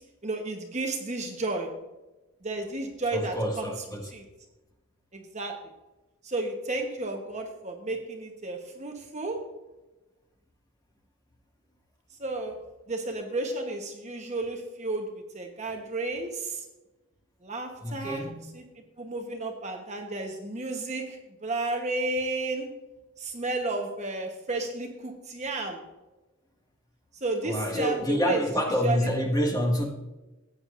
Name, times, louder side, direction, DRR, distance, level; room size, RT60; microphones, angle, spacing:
voice 1, 0.2-1.7 2.4-3.7 4.1-4.2 5.1-5.5 6.2-9.4 12.2-12.5 12.9-16.6 17.4-18.6 19.0-22.7 23.2-25.8 27.2-28.4 28.8-29.1, right 2 dB, 30° right, 3 dB, 1.0 m, -32 dB
voice 2, 3.1-4.1 17.8-18.4 27.4-29.8, equal, 15° left, 0 dB, 1.4 m, -27 dB
14.5 x 8.8 x 2.5 m, 1.1 s
head